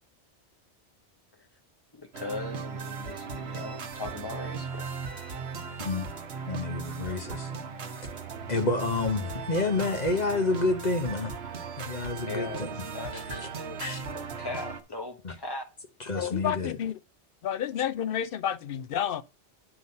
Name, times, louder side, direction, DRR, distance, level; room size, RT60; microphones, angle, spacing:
voice 1, 1.9-4.9 12.3-15.6 16.2-16.3, left 3 dB, 20° left, 1.3 m, -39 dB
sound 1, 2.1-14.8, right 5 dB, 65° right, 1.2 m, -37 dB
voice 2, 6.5-7.5 8.5-11.3 11.8-12.7 13.1-13.4 13.8-14.0 15.2-15.3 16.0-16.7, left 3 dB, 40° left, 1.1 m, -29 dB
voice 3, 16.1-17.0 17.4-19.2, left 9 dB, 60° left, 0.7 m, -30 dB
10.0 x 4.1 x 5.2 m
omnidirectional pair, 1.2 m